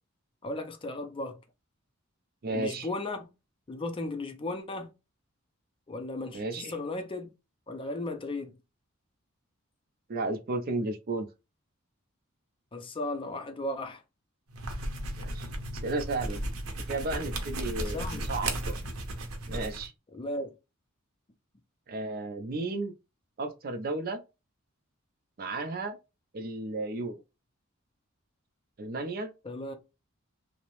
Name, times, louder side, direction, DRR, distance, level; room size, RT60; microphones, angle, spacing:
voice 1, 0.4-1.4 2.5-3.2 3.7-4.9 5.9-7.3 7.7-8.5 12.7-14.0 17.8-18.3 20.1-20.5 29.4-29.7, left 2 dB, 25° left, 0.4 m, -35 dB
voice 2, 2.4-2.9 6.3-6.8 10.1-11.3 15.2-15.4 15.8-16.4 16.9-18.8 19.5-19.9 21.9-22.9 23.4-24.2 25.4-26.0 26.3-27.1 28.8-29.3, right 2 dB, 45° right, 0.5 m, -33 dB
sound 1, 14.5-19.9, right 1 dB, 90° right, 0.7 m, -35 dB
2.7 x 2.0 x 2.9 m
head